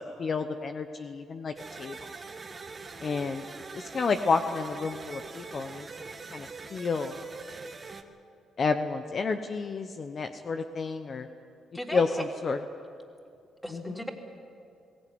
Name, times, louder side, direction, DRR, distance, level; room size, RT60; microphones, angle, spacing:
voice 1, 0.0-2.0 3.0-3.4 3.7-5.9 6.3-7.2 8.6-11.3 11.9-12.6 13.7-14.1, left 4 dB, 45° left, 7 dB, 1.0 m, -30 dB
sound 1, 1.6-8.0, right 4 dB, 35° right, 1.7 m, -43 dB
voice 2, 11.7-12.2 13.6-14.1, equal, 5° left, 1 dB, 3.4 m, -36 dB
22.0 x 17.0 x 9.6 m, 2.4 s
cardioid pair, 90°, 0 cm